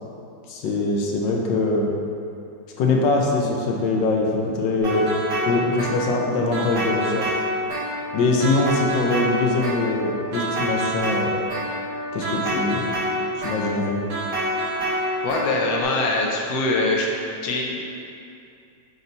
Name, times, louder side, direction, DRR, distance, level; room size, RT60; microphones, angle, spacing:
voice 1, 0.5-1.9 2.8-5.1 5.4-7.3 8.1-11.3 12.1-12.9 13.4-14.0, left 3 dB, 85° left, -1 dB, 1.4 m, -23 dB
sound 1, 4.8-15.8, equal, 80° right, 2.3 m, -27 dB
voice 2, 15.2-17.1 17.4-17.8, left 2 dB, 65° left, -1 dB, 1.0 m, -23 dB
5.7 x 4.0 x 4.0 m, 2.5 s
omnidirectional pair, 2.0 m